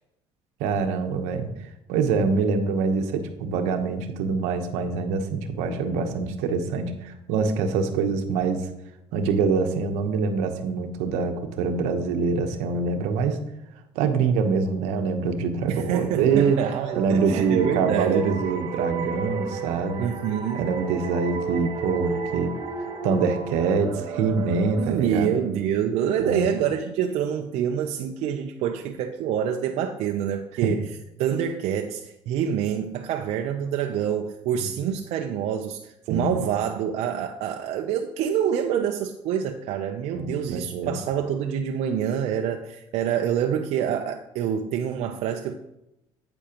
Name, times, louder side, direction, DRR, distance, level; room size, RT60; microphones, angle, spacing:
voice 1, 0.6-1.5 1.9-8.7 9.1-13.4 13.9-16.6 16.9-20.0 20.5-22.5 23.0-25.3 26.2-26.5 30.6-30.7 36.1-36.4 40.1-41.0, right 5 dB, 90° right, 6 dB, 1.0 m, -25 dB
voice 2, 15.7-18.4 20.0-20.7 24.8-45.6, right 9 dB, 70° right, 4 dB, 0.6 m, -26 dB
sound 1, 16.3-25.7, right 5 dB, 45° right, 1.6 m, -33 dB
8.8 x 8.4 x 2.9 m, 0.87 s
cardioid pair, 100°, 11 cm